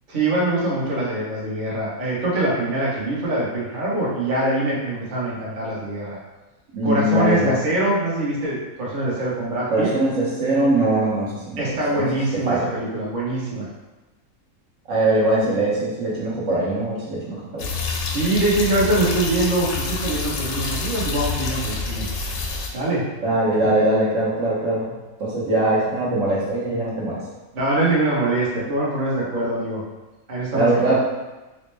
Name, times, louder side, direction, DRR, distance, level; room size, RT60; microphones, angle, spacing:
voice 1, 0.1-6.2 6.8-9.9 11.6-13.7 18.1-22.1 22.7-23.1 27.5-29.8 30.3-31.0, right 2 dB, 40° right, -6 dB, 0.9 m, -23 dB
voice 2, 6.7-7.5 9.7-12.1 12.5-12.7 14.9-17.7 23.2-24.9 25.2-27.2 30.5-31.0, right 1 dB, 65° right, -6 dB, 1.1 m, -21 dB
sound 1, 17.6-22.7, left 4 dB, 75° left, 1.0 m, -27 dB
4.2 x 2.0 x 3.1 m, 1.1 s
omnidirectional pair, 1.5 m